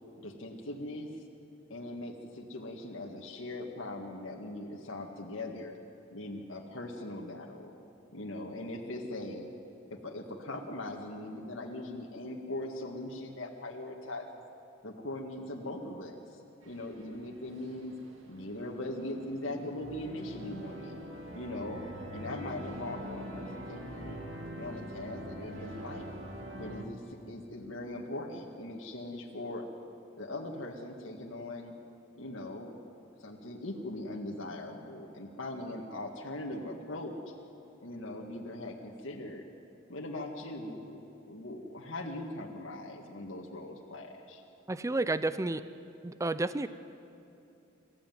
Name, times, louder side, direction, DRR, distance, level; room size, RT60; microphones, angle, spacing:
voice 1, 0.2-1.1 1.7-5.7 6.1-7.7 8.1-9.5 9.9-14.4 14.8-16.4 16.7-17.9 18.3-21.0 21.3-21.8 22.1-24.2 24.6-26.1 26.5-29.7 30.1-31.7 32.2-32.8 33.2-37.3 37.8-39.4 39.9-44.4, left 1 dB, 85° left, 0 dB, 1.9 m, -40 dB
sound 1, 16.6-26.9, equal, 90° right, 2.3 m, -44 dB
voice 2, 44.7-45.6 46.0-46.7, right 2 dB, 15° right, 13 dB, 0.5 m, -31 dB
25.5 x 14.5 x 9.4 m, 2.8 s
head